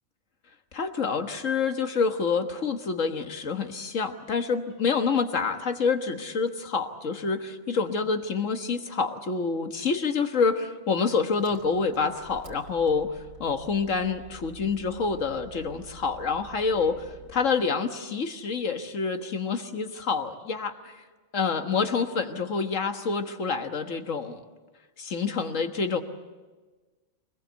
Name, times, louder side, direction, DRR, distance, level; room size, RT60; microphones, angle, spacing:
voice 1, 0.7-13.1 13.4-20.9 21.3-24.4 25.0-26.0, left 5 dB, 70° left, 7 dB, 1.8 m, -27 dB
Engine, 11.3-17.6, right 3 dB, 75° right, 3.7 m, -49 dB
24.5 x 21.0 x 8.2 m, 1.3 s
omnidirectional pair, 1.4 m